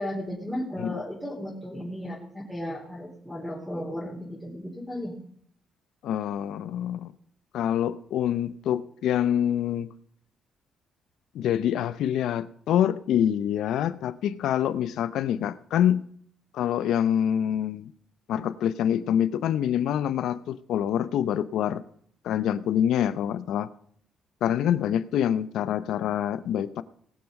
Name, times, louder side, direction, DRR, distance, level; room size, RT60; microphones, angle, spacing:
voice 1, 0.0-5.1, equal, ahead, -6 dB, 4.0 m, -35 dB
voice 2, 6.0-7.1 7.5-9.9 11.3-16.1 16.5-17.9 18.3-21.8 22.2-23.7 24.4-26.8, left 10 dB, 80° left, 15 dB, 0.7 m, -26 dB
19.5 x 7.1 x 5.4 m, 0.64 s
cardioid pair, 90°, 0 cm